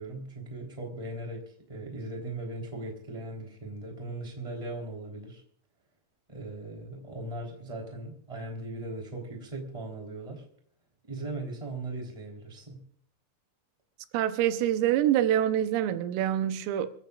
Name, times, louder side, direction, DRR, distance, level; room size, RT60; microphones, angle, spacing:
voice 1, 0.0-5.4 6.3-10.5 11.0-12.9, right 2 dB, 10° right, 2.8 m, -39 dB
voice 2, 14.1-16.9, right 11 dB, 85° right, 3.5 m, -26 dB
26.5 x 15.0 x 2.4 m
omnidirectional pair, 5.7 m